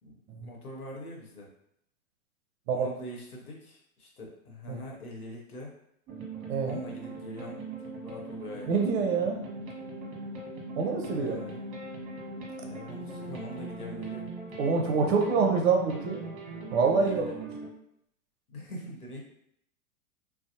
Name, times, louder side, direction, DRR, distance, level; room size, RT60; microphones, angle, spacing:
voice 1, 0.0-1.5 2.7-5.7 6.6-8.8 11.1-11.6 12.6-14.3 16.9-17.3 18.5-19.2, equal, 90° left, -1 dB, 1.0 m, -43 dB
sound 1, 6.1-17.7, right 2 dB, 30° right, 0.9 m, -40 dB
voice 2, 6.5-6.8 8.7-9.4 10.8-11.4 14.6-16.2 16.7-17.2, right 5 dB, 45° right, 2 dB, 0.6 m, -26 dB
2.6 x 2.0 x 2.7 m, 0.73 s
hypercardioid pair, 110°, 43 cm